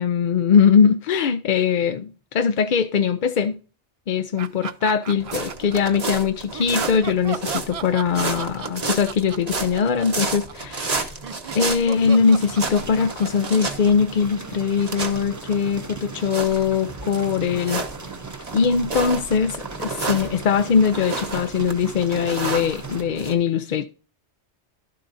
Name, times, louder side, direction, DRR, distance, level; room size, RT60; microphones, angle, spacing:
voice 1, 0.0-3.6 4.1-10.9 11.5-17.8 18.5-23.9, left 6 dB, 55° left, 0.6 m, -21 dB
sound 1, 4.4-6.0 6.5-14.8, right 7 dB, 60° right, 0.3 m, -36 dB
sound 2, 5.2-23.3, right 3 dB, 35° right, 1.1 m, -31 dB
sound 3, 11.9-23.0, right 4 dB, 20° right, 0.6 m, -38 dB
12.5 x 7.6 x 2.6 m
omnidirectional pair, 1.2 m